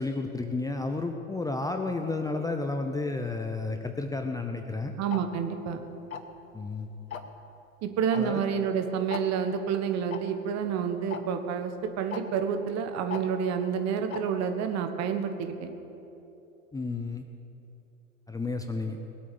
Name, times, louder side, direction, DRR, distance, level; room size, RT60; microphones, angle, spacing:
voice 1, 0.0-4.9 6.5-6.9 8.2-8.4 16.7-17.3 18.3-19.0, left 3 dB, 10° left, 5 dB, 0.7 m, -31 dB
voice 2, 5.0-5.8 7.8-15.7, right 7 dB, 40° right, 7 dB, 1.5 m, -29 dB
Tick-tock, 5.1-5.2 6.1-6.4 7.1-7.4 8.1-8.2 8.5-8.6 9.1-9.2 10.1-10.2 11.1-11.2 12.1-12.2 13.1-13.2 14.1-14.2, left 8 dB, 85° left, 1.0 m, -36 dB
19.5 x 8.5 x 6.8 m, 3.0 s
hypercardioid pair, 90°, 40 cm